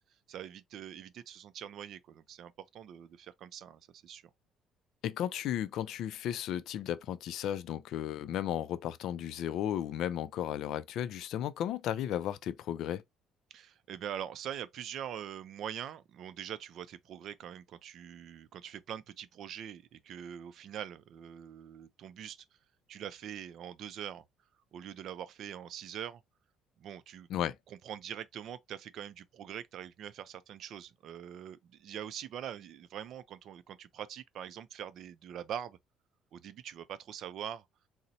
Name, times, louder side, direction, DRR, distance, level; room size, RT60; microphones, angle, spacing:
voice 1, 0.3-4.2 13.5-22.4 22.9-24.2 24.7-26.2 26.8-27.3 27.7-35.8 36.3-37.7, right 9 dB, 55° right, 0.4 m, -43 dB
voice 2, 5.0-13.0 27.3-27.6, left 11 dB, 65° left, 0.3 m, -34 dB
3.9 x 2.0 x 2.7 m
cardioid pair, 145°, 0 cm